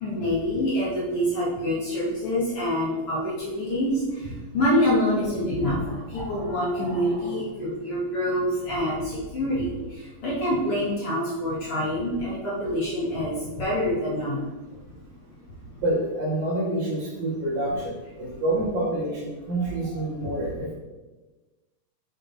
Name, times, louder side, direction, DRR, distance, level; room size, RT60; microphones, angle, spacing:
voice 1, 0.0-4.0 4.5-9.7 10.2-14.4 19.9-20.0, equal, 50° left, -8 dB, 2.2 m, -26 dB
voice 2, 15.8-20.7, right 1 dB, 65° right, -5 dB, 3.0 m, -27 dB
7.2 x 6.4 x 2.7 m, 1.2 s
omnidirectional pair, 3.9 m